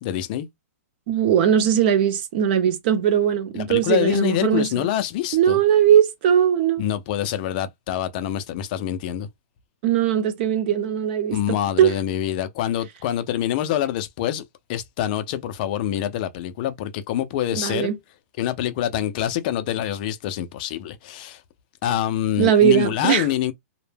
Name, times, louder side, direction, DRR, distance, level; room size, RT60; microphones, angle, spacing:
voice 1, 0.0-0.5 3.5-5.6 6.8-9.3 11.3-14.4 14.7-17.9 18.4-21.4 21.8-23.5, left 11 dB, 30° left, 0.4 m, -25 dB
voice 2, 1.1-4.9 5.3-6.8 9.8-11.4 11.8-11.9 17.6-17.9 22.4-23.3, right 9 dB, 40° right, 0.6 m, -19 dB
2.1 x 2.0 x 3.2 m
hypercardioid pair, 160°, 9 cm